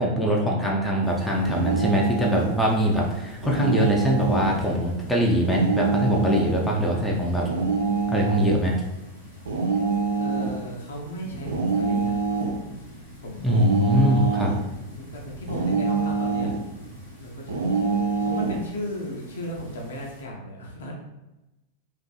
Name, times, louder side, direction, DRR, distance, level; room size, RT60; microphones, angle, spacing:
voice 1, 0.0-7.5 8.1-8.8 13.4-14.5, equal, 5° left, -2 dB, 0.4 m, -23 dB
sound 1, 1.0-20.2, equal, 90° right, 0.9 m, -43 dB
sound 2, 1.4-2.6 3.4-4.6 5.4-6.6 7.4-8.5 9.5-10.6 11.5-12.6 13.5-14.6 15.5-16.6 17.5-18.6, right 4 dB, 65° right, 0.4 m, -25 dB
voice 2, 10.2-12.3 13.2-14.5 14.9-16.5 17.2-17.9 18.2-20.9, left 1 dB, 65° left, -1 dB, 0.5 m, -36 dB
2.5 x 2.5 x 2.3 m, 0.98 s
figure-of-eight pair, 90°, 0 cm